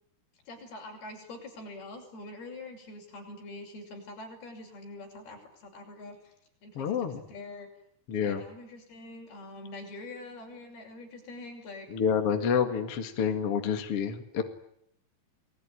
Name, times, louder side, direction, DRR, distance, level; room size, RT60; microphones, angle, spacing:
voice 1, 0.5-6.3 6.6-7.7 8.2-11.9, left 2 dB, 70° left, 2 dB, 8.0 m, -45 dB
voice 2, 6.8-7.2 8.1-8.4 11.9-14.4, left 7 dB, 45° left, 6 dB, 2.3 m, -28 dB
30.0 x 20.0 x 9.9 m, 0.73 s
omnidirectional pair, 4.7 m